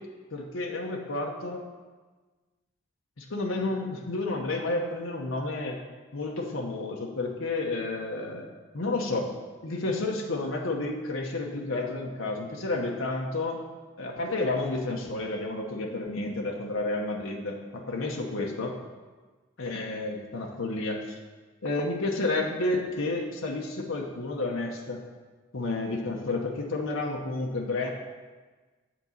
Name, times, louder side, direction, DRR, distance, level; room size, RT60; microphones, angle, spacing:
voice 1, 0.3-1.6 3.2-5.8 6.1-8.5 8.7-9.3 9.6-13.6 14.0-18.7 19.6-21.0 21.6-25.0 25.5-27.9, left 2 dB, 75° left, 0 dB, 0.9 m, -31 dB
8.9 x 4.0 x 7.1 m, 1.3 s
head